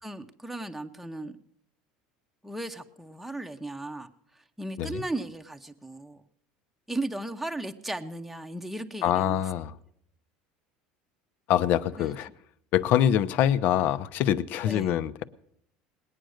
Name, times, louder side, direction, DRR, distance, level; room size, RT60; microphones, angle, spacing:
voice 1, 0.0-1.4 2.4-4.1 4.6-6.2 6.9-9.4 12.0-12.1 14.7-14.9, right 2 dB, 5° right, 0.8 m, -36 dB
voice 2, 9.0-9.8 11.5-12.3 12.7-15.2, left 10 dB, 55° left, 0.7 m, -25 dB
20.0 x 9.2 x 6.4 m
supercardioid pair, 120°, 4 cm